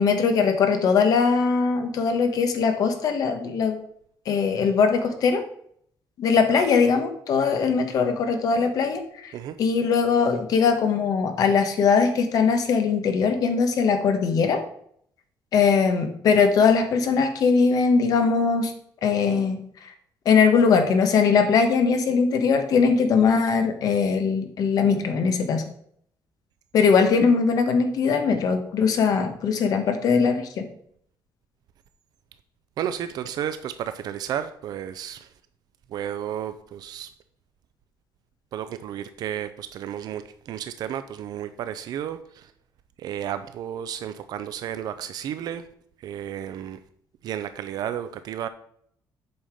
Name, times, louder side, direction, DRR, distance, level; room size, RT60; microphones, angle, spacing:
voice 1, 0.0-3.8 4.3-5.4 6.2-9.0 9.6-14.6 15.5-18.7 19.0-19.6 20.2-25.6 26.7-30.7, left 5 dB, 50° left, 7 dB, 1.2 m, -21 dB
voice 2, 32.8-35.3 35.9-37.1 38.5-42.5 43.0-45.7 46.0-46.8 47.2-48.5, right 10 dB, 55° right, 11 dB, 0.5 m, -32 dB
7.9 x 5.6 x 5.0 m, 0.67 s
cardioid pair, 175°, 8 cm